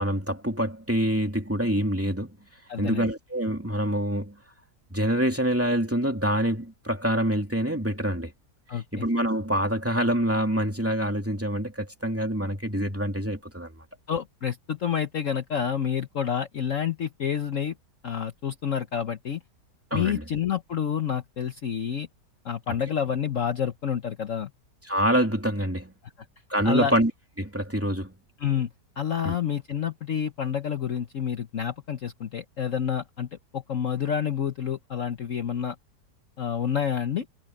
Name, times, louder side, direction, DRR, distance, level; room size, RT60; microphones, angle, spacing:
voice 1, 0.0-2.4 2.8-4.4 4.9-8.3 8.7-13.7 19.9-20.2 22.7-22.8 24.9-25.9 26.5-27.1 27.4-28.1 29.2-29.3, right 1 dB, 10° right, 3.1 m, -26 dB
voice 2, 2.7-3.1 8.7-9.0 14.1-17.7 18.0-19.4 19.9-22.1 22.4-24.5 26.6-26.9 28.4-28.7 29.0-35.7 36.4-37.3, left 8 dB, 50° left, 1.3 m, -28 dB
omnidirectional pair, 1.8 m